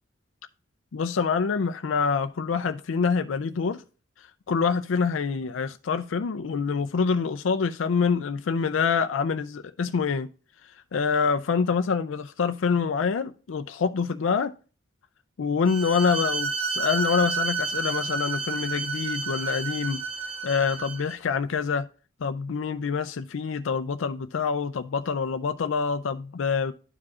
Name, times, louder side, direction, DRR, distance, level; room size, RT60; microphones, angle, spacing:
voice 1, 0.9-3.8 4.5-10.3 10.9-14.5 15.4-20.0 20.4-21.9 22.2-26.7, left 5 dB, 90° left, 0.4 m, -26 dB
Bowed string instrument, 15.6-21.1, right 4 dB, 30° right, 1.0 m, -30 dB
12.0 x 4.8 x 2.4 m
head